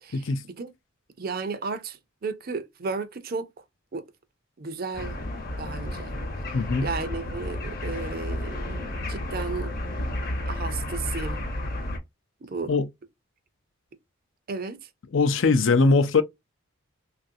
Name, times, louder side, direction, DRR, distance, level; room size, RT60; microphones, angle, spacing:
voice 1, 0.1-0.4 6.5-6.9 12.7-12.9 15.1-16.2, left 3 dB, 60° left, 0.5 m, -21 dB
voice 2, 1.2-3.5 3.9-4.0 4.6-5.2 5.6-6.2 6.8-9.7 10.0-10.1 10.5-11.4 12.4-12.8 14.5-14.8, right 4 dB, 45° right, 0.5 m, -33 dB
sound 1, 4.9-12.0, left 1 dB, 45° left, 0.9 m, -32 dB
3.1 x 2.5 x 2.6 m
head